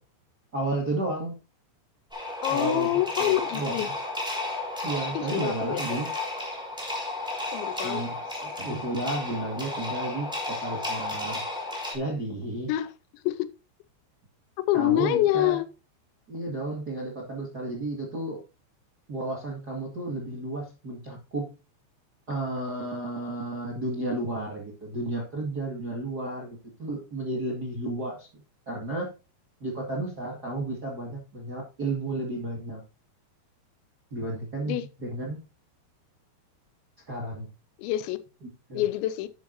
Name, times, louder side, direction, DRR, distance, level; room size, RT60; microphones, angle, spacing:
voice 1, 0.5-1.3 2.5-2.9 3.2-3.9 4.8-6.1 7.8-11.4 11.9-12.7 14.7-15.6 16.3-18.4 19.1-21.5 22.3-28.3 28.6-29.1 29.6-32.8 34.1-35.4 37.1-37.5 38.4-38.8, right 2 dB, 45° right, 1.3 m, -32 dB
sound 1, 2.1-11.9, left 2 dB, ahead, 2.5 m, -33 dB
voice 2, 2.4-3.9 5.1-6.0 7.5-8.0 12.7-12.9 13.2-13.5 14.7-15.7 34.7-34.9 37.8-38.2 38.7-39.3, left 14 dB, 85° left, 3.1 m, -26 dB
11.0 x 9.4 x 2.7 m
omnidirectional pair, 5.2 m